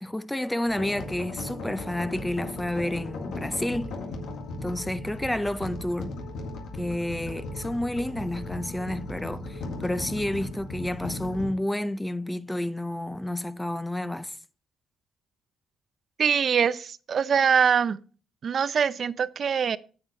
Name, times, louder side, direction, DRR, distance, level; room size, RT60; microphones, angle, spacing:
voice 1, 0.0-3.9 4.6-6.1 6.7-14.3, left 1 dB, 10° left, 0.5 m, -30 dB
sound 1, 0.7-11.5, left 2 dB, 80° left, 1.8 m, -37 dB
voice 2, 16.2-18.0 18.4-19.8, right 7 dB, 50° right, 0.5 m, -23 dB
8.8 x 7.3 x 3.2 m
cardioid pair, 90°, 0 cm